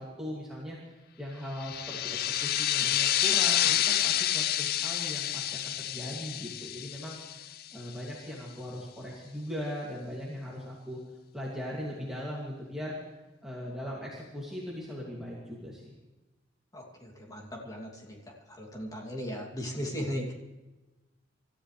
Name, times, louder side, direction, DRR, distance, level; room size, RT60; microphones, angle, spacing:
voice 1, 0.0-7.4 7.7-11.0 11.3-12.9 13.4-15.9, equal, 5° right, -6 dB, 2.5 m, -39 dB
sound 1, 1.6-7.9, left 12 dB, 55° left, 0.4 m, -29 dB
voice 2, 16.7-18.2 18.5-20.3, equal, 20° left, 0 dB, 2.8 m, -37 dB
27.0 x 14.0 x 3.4 m, 1.1 s
head